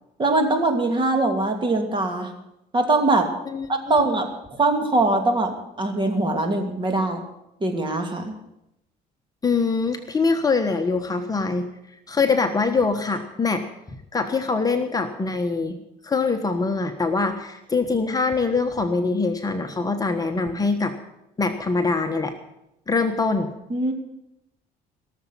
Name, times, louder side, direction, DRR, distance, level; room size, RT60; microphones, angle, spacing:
voice 1, 0.2-2.3 2.7-3.3 3.7-4.3 4.6-7.2 7.6-8.3 23.7-23.9, right 2 dB, 30° right, 5 dB, 2.7 m, -22 dB
voice 2, 3.5-4.0 9.4-11.7 12.1-13.6 14.1-15.8 16.0-20.9 21.4-22.4 22.9-23.5, left 4 dB, 20° left, 5 dB, 1.3 m, -23 dB
17.5 x 7.3 x 9.9 m, 0.87 s
cardioid pair, 110°, 17 cm